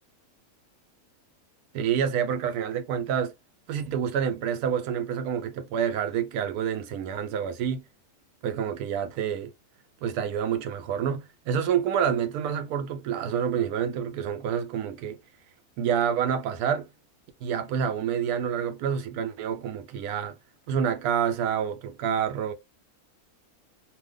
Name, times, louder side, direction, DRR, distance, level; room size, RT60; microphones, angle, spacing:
voice 1, 1.7-3.3 3.7-7.8 8.4-9.5 10.0-15.2 15.8-16.9 17.4-20.4 20.7-22.5, right 8 dB, 85° right, 1.1 m, -28 dB
2.7 x 2.2 x 3.6 m
omnidirectional pair, 1.6 m